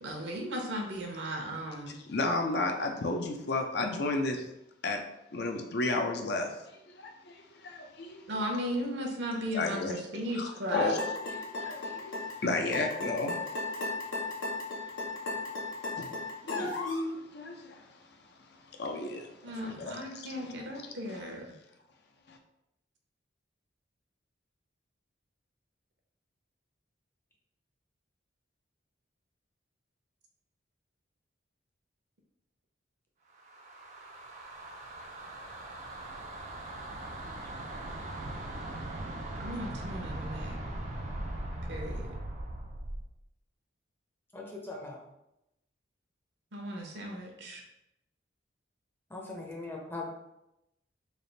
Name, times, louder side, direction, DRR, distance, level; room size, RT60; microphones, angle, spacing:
voice 1, 0.0-2.0 8.3-10.9 19.4-21.4 39.4-40.6 41.7-42.0 46.5-47.6, equal, 65° right, 1 dB, 0.8 m, -36 dB
voice 2, 2.0-4.5 4.8-5.0 5.3-6.6 6.9-8.2 9.5-9.9 10.3-13.4 13.8-14.0 15.1-15.5 15.9-16.1 16.4-17.9 18.8-20.5 21.1-21.2 22.3-22.4, left 2 dB, 55° left, 4 dB, 0.5 m, -33 dB
sound 1, 11.0-17.1, left 3 dB, 90° left, 0.9 m, -35 dB
sound 2, 33.3-43.1, right 1 dB, 40° right, 0.4 m, -40 dB
voice 3, 44.3-45.0 49.1-50.1, left 2 dB, 10° left, -1 dB, 0.6 m, -40 dB
3.3 x 2.4 x 4.0 m, 0.85 s
head